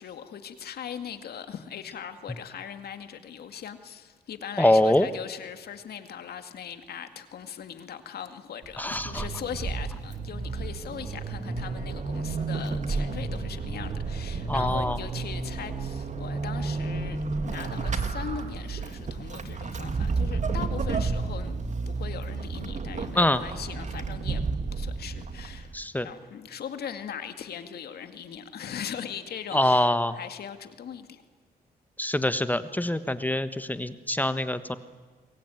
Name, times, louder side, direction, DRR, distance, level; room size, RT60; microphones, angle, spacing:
voice 1, 0.0-21.6 21.9-24.4 24.7-25.7 26.0-29.9 30.2-31.2, left 8 dB, 75° left, 2.2 m, -39 dB
voice 2, 4.6-5.1 8.8-9.2 14.5-15.0 23.1-23.4 25.7-26.1 29.5-30.2 32.0-34.8, left 1 dB, 10° left, 1.3 m, -24 dB
Vehicle / Accelerating revving vroom / Squeak, 8.6-25.8, right 4 dB, 45° right, 2.3 m, -31 dB
28.5 x 22.0 x 9.3 m
cardioid pair, 85°, 16 cm